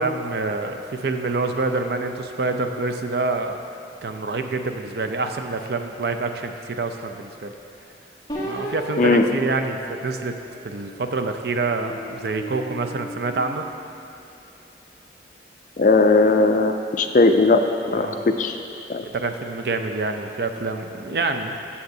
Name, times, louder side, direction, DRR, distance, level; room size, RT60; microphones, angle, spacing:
voice 1, 0.0-3.6 4.0-7.5 8.4-10.3 10.6-13.6 18.0-18.2 19.0-21.6, right 3 dB, 60° right, 6 dB, 0.5 m, -27 dB
sound 1, 8.3-11.0 11.6-14.1, right 1 dB, 20° left, 0.7 m, -35 dB
voice 2, 15.8-17.6 17.9-18.6 18.9-19.0, left 3 dB, 45° left, 6 dB, 0.4 m, -18 dB
13.0 x 7.0 x 2.7 m, 2.8 s
head